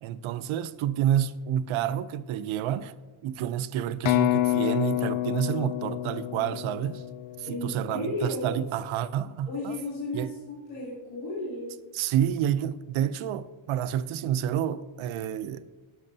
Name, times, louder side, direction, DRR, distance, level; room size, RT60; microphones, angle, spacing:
voice 1, 0.0-2.9 3.2-7.0 7.5-9.7 10.1-10.3 11.9-15.6, right 10 dB, 70° right, 0.6 m, -29 dB
sound 1, 4.1-7.8, left 16 dB, 70° left, 0.5 m, -28 dB
voice 2, 7.4-8.5 9.5-10.4 10.7-11.7, left 2 dB, 50° left, 2.7 m, -33 dB
12.0 x 11.0 x 2.7 m
wide cardioid pair, 175°, 50 cm